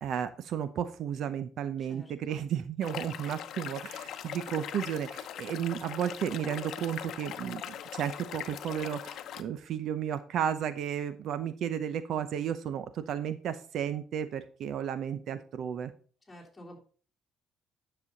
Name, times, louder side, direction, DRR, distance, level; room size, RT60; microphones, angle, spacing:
voice 1, 0.0-15.9, right 9 dB, 60° right, 12 dB, 0.7 m, -33 dB
voice 2, 1.8-2.4 16.3-16.8, equal, 5° left, -3 dB, 3.6 m, -50 dB
sound 1, 2.8-9.4, left 10 dB, 60° left, 0.9 m, -41 dB
10.0 x 6.9 x 4.0 m, 0.41 s
cardioid pair, 135°, 0 cm